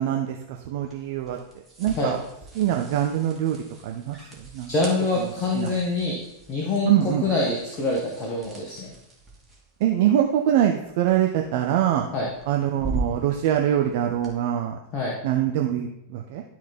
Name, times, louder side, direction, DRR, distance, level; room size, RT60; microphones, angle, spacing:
voice 1, 0.0-1.4 1.8-2.2 2.5-4.7 5.2-5.8 6.8-7.2 9.8-12.1 12.5-14.8 15.2-16.4, right 11 dB, 50° right, 3 dB, 0.6 m, -24 dB
sound 1, 0.8-14.3, right 2 dB, 10° right, 2.5 m, -41 dB
voice 2, 4.7-6.2 6.5-8.9 12.1-12.3 14.9-15.1, left 3 dB, 30° left, -2 dB, 1.6 m, -25 dB
12.0 x 4.1 x 4.3 m, 0.82 s
figure-of-eight pair, 90°, 0 cm